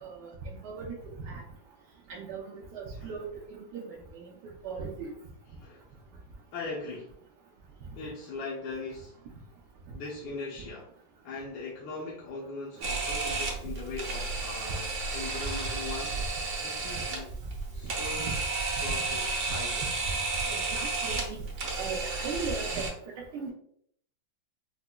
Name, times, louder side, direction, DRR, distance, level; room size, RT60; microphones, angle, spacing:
voice 1, 0.0-1.0 1.2-1.4 2.1-4.3 4.6-5.1 12.8-12.9 18.3-18.4 20.5-21.4 21.8-22.9 23.2-23.5, right 5 dB, 75° right, -2 dB, 1.1 m, -38 dB
voice 2, 6.5-7.1 7.9-9.1 9.9-10.9 11.2-16.2 16.6-17.3 17.7-19.8, left 3 dB, 75° left, -4 dB, 1.3 m, -40 dB
Camera, 12.8-22.9, right 3 dB, 55° right, 0.9 m, -32 dB
4.9 x 2.1 x 2.2 m, 0.66 s
omnidirectional pair, 2.0 m